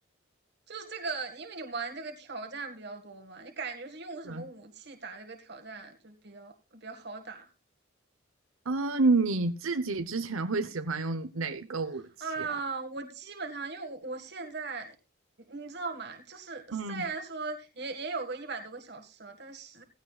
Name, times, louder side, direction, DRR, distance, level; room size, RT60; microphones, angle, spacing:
voice 1, 0.7-7.5 12.2-15.0 15.5-19.8, right 4 dB, 55° right, 1.9 m, -39 dB
voice 2, 8.7-12.1 16.7-17.0, right 3 dB, 90° right, 1.0 m, -29 dB
16.0 x 15.5 x 2.4 m
head